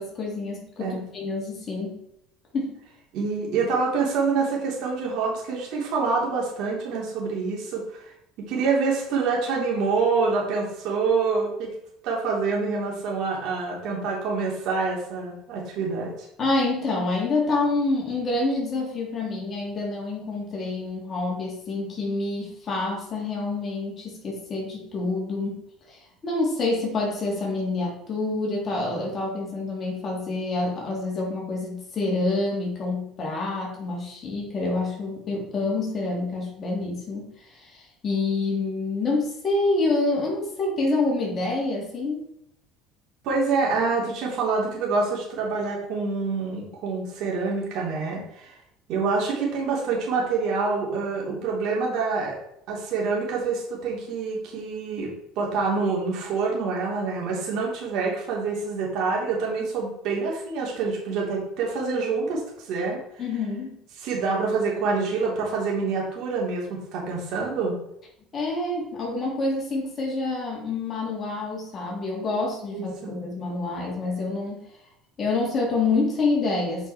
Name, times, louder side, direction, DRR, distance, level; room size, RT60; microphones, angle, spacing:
voice 1, 0.0-2.0 2.5-2.8 16.4-25.6 25.9-42.3 63.2-63.7 68.3-74.6 75.2-76.9, left 3 dB, 35° left, -3 dB, 3.2 m, -27 dB
voice 2, 3.1-8.0 8.5-11.7 12.0-16.3 43.2-48.5 48.9-52.4 52.7-63.0 64.0-67.8 72.7-73.1, right 4 dB, 65° right, -3 dB, 3.4 m, -26 dB
8.9 x 5.5 x 4.5 m, 0.76 s
supercardioid pair, 115°, 0 cm